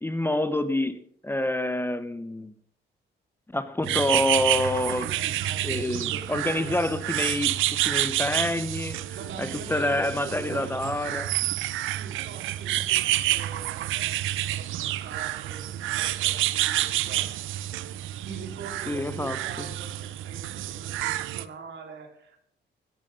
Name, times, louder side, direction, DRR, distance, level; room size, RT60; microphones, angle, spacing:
voice 1, 0.0-2.5 3.5-5.1 5.6-9.0 9.4-11.3 18.9-19.7, left 1 dB, 10° left, 13 dB, 0.7 m, -27 dB
sound 1, 3.8-21.4, right 14 dB, 85° right, 0.6 m, -29 dB
voice 2, 4.9-6.9 9.1-11.3 11.9-17.3 18.2-22.4, right 5 dB, 65° right, 4 dB, 3.2 m, -44 dB
13.5 x 11.0 x 5.2 m, 0.68 s
cardioid pair, 90°, 20 cm